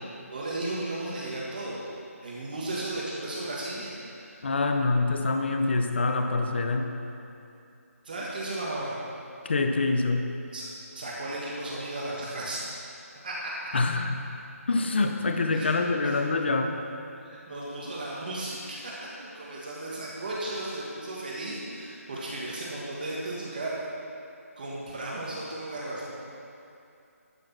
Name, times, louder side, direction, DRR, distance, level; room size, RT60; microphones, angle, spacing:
voice 1, 0.3-1.8 2.2-4.5 8.0-8.9 10.5-10.7 10.9-12.7 13.2-13.7 15.5-15.8 16.0-16.3 17.2-23.8 24.6-26.1, right 1 dB, 35° right, -6 dB, 1.6 m, -35 dB
voice 2, 4.4-6.9 9.4-10.3 13.7-14.2 14.7-16.8, left 3 dB, 45° left, 5 dB, 0.8 m, -25 dB
12.5 x 6.1 x 6.0 m, 2.7 s
hypercardioid pair, 170°, 8 cm